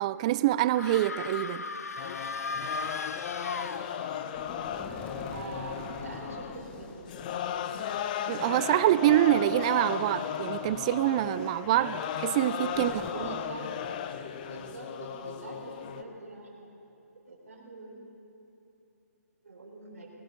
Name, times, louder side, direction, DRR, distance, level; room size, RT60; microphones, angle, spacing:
voice 1, 0.0-1.6 8.3-13.3, right 14 dB, 25° right, 0.3 m, -26 dB
sound 1, 0.7-4.4, left 4 dB, 70° left, 0.6 m, -37 dB
sound 2, 2.0-16.0, left 9 dB, 30° left, 0.6 m, -36 dB
sound 3, 4.3-7.5 7.9-8.0 9.3-11.2 11.5-11.6 12.7-13.1, left 3 dB, 10° left, 1.1 m, -45 dB
voice 2, 5.3-7.7 12.7-13.7 14.4-16.7 17.3-18.0 19.4-20.1, right 2 dB, 65° right, 4.0 m, -44 dB
20.5 x 16.5 x 3.8 m
figure-of-eight pair, 135°, 9 cm